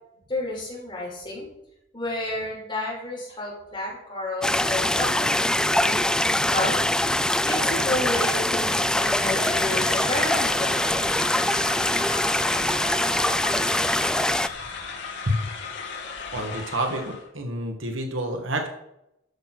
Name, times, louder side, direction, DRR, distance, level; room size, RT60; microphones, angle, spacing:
voice 1, 0.3-1.5 1.9-6.2 6.5-6.7 7.4-11.1, left 2 dB, 25° left, -4 dB, 5.4 m, -31 dB
sound 1, 4.4-14.5, left 1 dB, 5° left, 0.4 m, -23 dB
sound 2, 8.8-17.3, left 5 dB, 65° left, 2.5 m, -36 dB
voice 2, 16.3-18.7, right 1 dB, 75° right, 3 dB, 2.2 m, -28 dB
12.5 x 6.7 x 6.3 m, 0.83 s
head